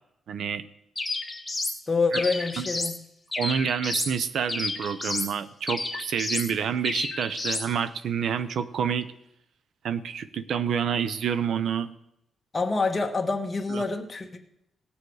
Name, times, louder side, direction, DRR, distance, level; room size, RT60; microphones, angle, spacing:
voice 1, 0.3-0.6 2.1-2.2 2.6-2.7 3.4-9.1 9.8-11.9 13.7-13.8, right 7 dB, 70° right, 13 dB, 0.7 m, -28 dB
sound 1, 1.0-1.8 2.1-3.0 3.3-4.1 4.5-5.3 5.7-6.5 6.8-7.7, left 2 dB, 10° left, 2.0 m, -31 dB
voice 2, 1.9-3.0 12.5-14.4, left 3 dB, 25° left, 3 dB, 1.4 m, -26 dB
17.5 x 7.0 x 4.8 m, 0.79 s
cardioid pair, 115°, 0 cm